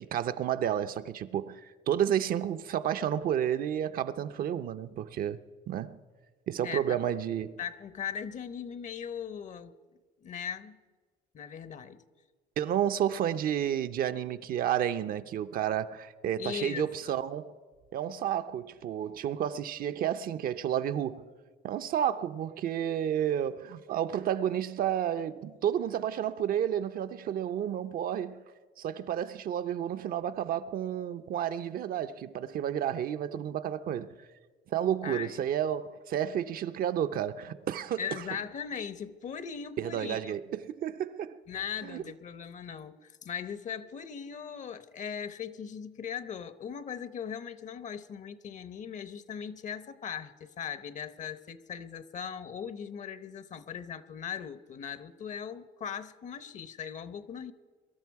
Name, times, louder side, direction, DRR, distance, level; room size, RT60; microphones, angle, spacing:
voice 1, 0.0-5.4 5.7-6.0 6.5-7.6 12.6-17.5 17.9-21.3 21.6-28.4 28.8-34.2 34.7-38.0 39.8-41.4 41.8-42.0, right 10 dB, 60° right, 0.7 m, -31 dB
voice 2, 6.6-7.0 7.6-9.7 10.2-10.8 11.3-12.0 16.4-17.2 35.0-35.5 38.0-40.3 41.5-57.5, left 7 dB, 45° left, 0.9 m, -39 dB
23.0 x 13.0 x 4.7 m
cardioid pair, 110°, 17 cm